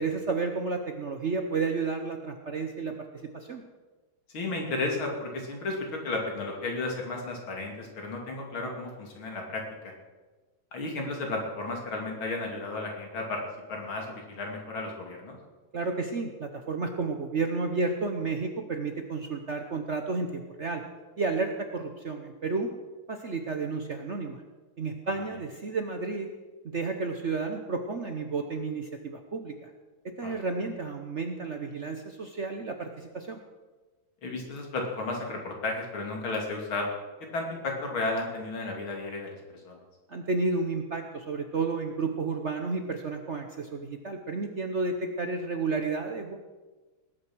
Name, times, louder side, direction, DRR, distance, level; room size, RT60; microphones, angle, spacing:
voice 1, 0.0-3.6 15.7-20.8 21.2-22.7 23.1-24.4 24.8-26.3 26.7-29.7 30.0-33.4 40.1-46.4, right 4 dB, 50° right, 5 dB, 0.9 m, -31 dB
voice 2, 4.3-9.9 10.7-13.4 13.7-15.4 30.2-30.4 34.2-36.9 37.3-39.8, left 2 dB, 75° left, 1 dB, 3.5 m, -33 dB
19.0 x 9.2 x 6.2 m, 1.3 s
omnidirectional pair, 2.2 m